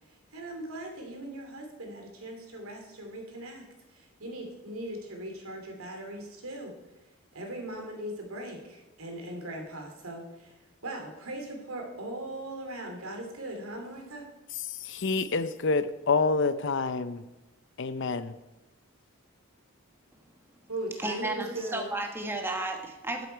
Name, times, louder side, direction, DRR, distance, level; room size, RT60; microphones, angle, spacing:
voice 1, 0.3-6.7 7.3-10.6 10.8-14.3 20.7-21.9, right 1 dB, 85° right, 2 dB, 2.9 m, -39 dB
voice 2, 15.0-17.2 17.8-18.3, left 4 dB, 60° left, 13 dB, 0.6 m, -27 dB
voice 3, 21.0-23.3, right 2 dB, 10° right, 3 dB, 1.2 m, -33 dB
12.0 x 8.1 x 4.5 m, 1.0 s
head